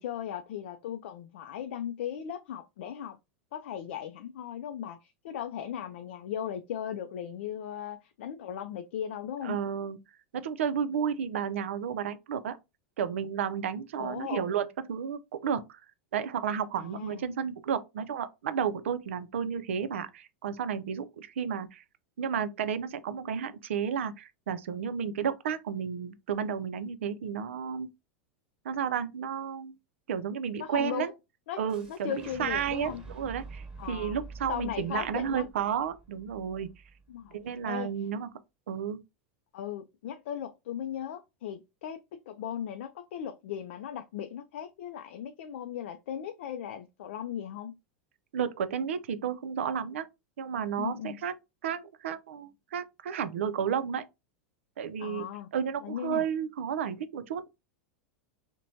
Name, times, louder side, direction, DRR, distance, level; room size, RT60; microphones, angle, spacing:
voice 1, 0.0-3.2 3.5-9.6 14.0-14.4 16.8-17.2 30.6-31.1 31.5-31.6 31.9-33.0 33.8-34.2 34.5-35.4 37.1-37.4 37.6-37.9 39.5-47.7 50.8-51.2 55.0-55.5 55.8-56.2, left 9 dB, 75° left, 0.4 m, -37 dB
voice 2, 9.4-10.0 10.3-12.6 13.0-15.8 16.1-21.8 22.2-27.9 28.6-29.7 30.1-31.1 31.6-36.7 37.3-38.3 38.7-39.0 48.3-50.1 50.4-51.3 51.6-54.0 54.8-55.3 55.5-57.5, right 7 dB, 80° right, 0.4 m, -32 dB
Fire / Explosion, 31.7-37.6, right 3 dB, 10° right, 1.1 m, -47 dB
3.0 x 2.1 x 2.6 m
hypercardioid pair, 105°, 7 cm